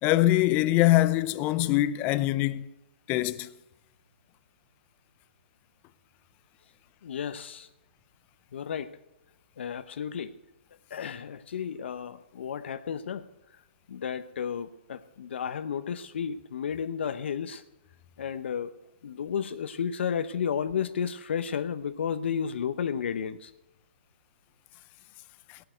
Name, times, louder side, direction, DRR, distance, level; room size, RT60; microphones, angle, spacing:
voice 1, 0.0-2.7 3.1-3.5 25.5-25.6, left 16 dB, 25° left, 0.6 m, -23 dB
voice 2, 7.0-7.7 8.5-9.0 9.6-10.4 10.9-13.6 13.9-17.6 18.2-23.5, left 7 dB, 70° left, 0.8 m, -33 dB
18.0 x 7.7 x 9.1 m
hypercardioid pair, 150°, 7 cm